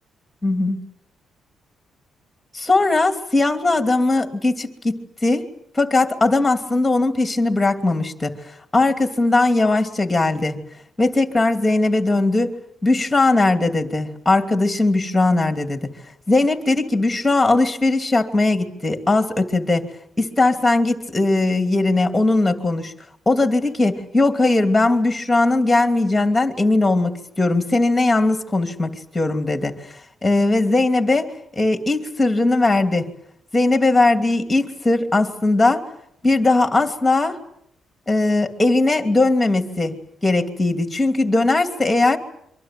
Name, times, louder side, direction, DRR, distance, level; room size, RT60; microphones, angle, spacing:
voice 1, 0.4-0.8 2.5-5.4 5.7-8.4 8.7-10.6 11.0-12.5 12.8-15.9 16.3-19.8 20.2-22.9 23.3-29.7 30.2-33.1 33.5-35.8 36.2-37.4 38.1-39.9 40.2-42.2, left 2 dB, 10° left, 6 dB, 2.8 m, -19 dB
26.0 x 25.0 x 7.7 m, 0.72 s
cardioid pair, 125°, 0 cm